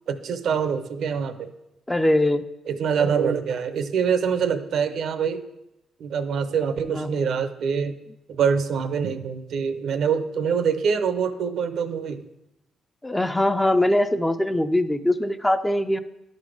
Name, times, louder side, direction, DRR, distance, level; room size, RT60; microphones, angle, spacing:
voice 1, 0.1-1.5 2.7-5.4 6.0-7.9 8.3-12.2, right 6 dB, 70° right, 11 dB, 0.6 m, -25 dB
voice 2, 1.9-2.4 6.9-7.3 13.0-16.0, left 1 dB, 10° left, 10 dB, 0.4 m, -22 dB
11.0 x 4.0 x 4.9 m, 0.89 s
cardioid pair, 90°, 0 cm